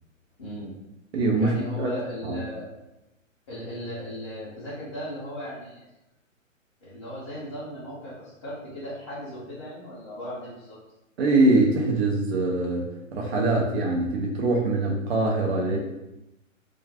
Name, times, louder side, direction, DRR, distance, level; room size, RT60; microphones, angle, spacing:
voice 1, 0.4-0.7 1.4-2.7 3.5-5.9 6.8-10.8 15.6-15.8, equal, 20° left, -10 dB, 0.5 m, -37 dB
voice 2, 1.1-2.0 2.2-2.4 11.2-12.9 13.1-15.8, right 2 dB, 50° right, -1 dB, 0.7 m, -23 dB
2.4 x 2.4 x 3.3 m, 0.93 s
hypercardioid pair, 140°, 40 cm